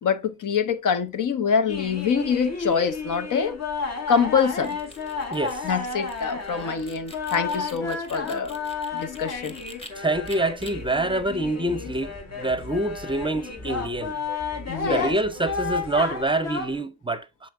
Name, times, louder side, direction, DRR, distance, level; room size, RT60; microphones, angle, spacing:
voice 1, 0.0-3.6 4.1-4.8 5.6-8.6 8.9-9.6 14.7-15.1, left 6 dB, 80° left, 0.9 m, -25 dB
sound 1, 1.7-16.8, left 4 dB, 55° left, 1.5 m, -32 dB
sound 2, 4.4-9.9 10.3-10.7, left 1 dB, 20° left, 1.2 m, -46 dB
voice 2, 5.3-5.7 10.0-14.2 14.8-17.5, right 2 dB, 15° right, 0.5 m, -26 dB
sound 3, 10.1-16.1, left 1 dB, 35° left, 2.2 m, -43 dB
7.6 x 4.2 x 3.5 m
wide cardioid pair, 120°, 31 cm